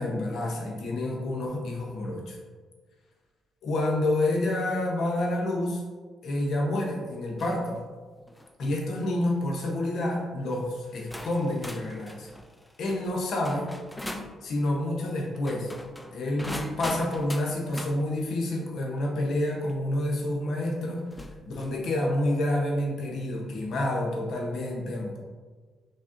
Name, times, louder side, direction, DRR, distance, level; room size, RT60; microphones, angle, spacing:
voice 1, 0.0-2.4 3.6-5.8 6.2-7.8 8.6-12.3 12.8-13.7 14.4-15.7 16.1-21.1 21.5-25.2, left 1 dB, 70° left, -1 dB, 0.7 m, -28 dB
sound 1, 7.4-7.7 8.2-8.5 9.4-9.6 10.5-10.6 11.1-14.4 15.3-18.0 19.7-19.8 21.1-21.8, left 1 dB, 10° left, 0.3 m, -40 dB
4.0 x 3.4 x 2.5 m, 1.5 s
cardioid pair, 90°, 0 cm